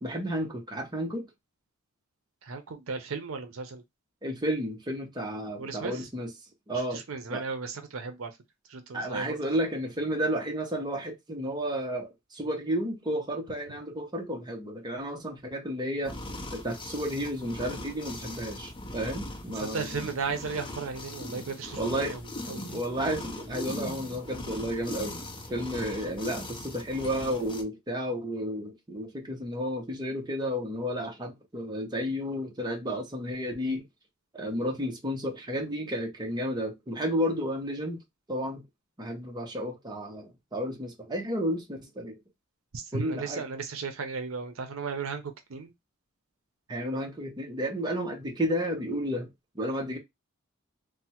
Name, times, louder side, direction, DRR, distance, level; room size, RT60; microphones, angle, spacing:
voice 1, 0.0-1.3 4.2-6.3 6.7-7.0 7.3-7.4 8.9-16.2 16.5-20.1 21.8-22.1 22.7-25.2 25.5-33.8 34.3-38.0 38.3-38.6 39.0-42.2 42.9-43.4 46.7-49.3 49.5-50.0, equal, 20° right, 0.7 m, -32 dB
voice 2, 2.4-3.8 5.6-5.9 6.9-8.3 8.7-9.3 19.6-22.2 22.5-22.8 42.7-45.2 45.5-45.7, right 4 dB, 70° right, 0.6 m, -35 dB
sound 1, 16.0-27.6, left 1 dB, 25° left, 0.6 m, -40 dB
3.3 x 2.1 x 2.8 m
head